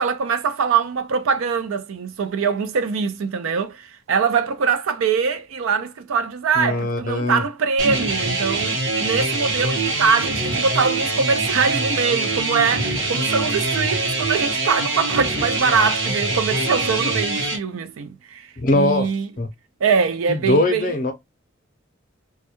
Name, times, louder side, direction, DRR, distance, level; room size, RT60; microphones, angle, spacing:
voice 1, 0.0-8.7 9.0-19.3 19.8-21.0, right 5 dB, 85° right, 0.4 m, -23 dB
voice 2, 6.6-7.4 18.6-19.1 19.4-19.5 20.3-21.1, left 2 dB, 40° left, 0.5 m, -21 dB
sound 1, 7.8-17.6, right 3 dB, 65° right, 0.8 m, -23 dB
2.2 x 2.1 x 2.9 m
head